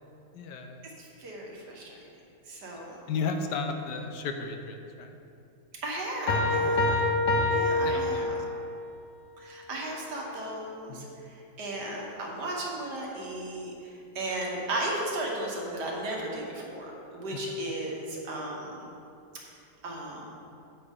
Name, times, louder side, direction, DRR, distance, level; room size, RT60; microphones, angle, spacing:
voice 1, 0.3-0.8 3.1-5.2 6.6-7.0 7.4-8.4 10.9-11.1, left 4 dB, 80° left, 5 dB, 1.4 m, -35 dB
voice 2, 1.0-1.9 2.5-3.0 5.8-7.0 7.5-8.3 9.4-18.8 19.8-20.3, right 1 dB, 80° right, -2 dB, 2.0 m, -35 dB
Piano, 6.3-8.8, left 2 dB, 55° left, 1.3 m, -26 dB
9.1 x 8.7 x 3.6 m, 2.6 s
omnidirectional pair, 1.8 m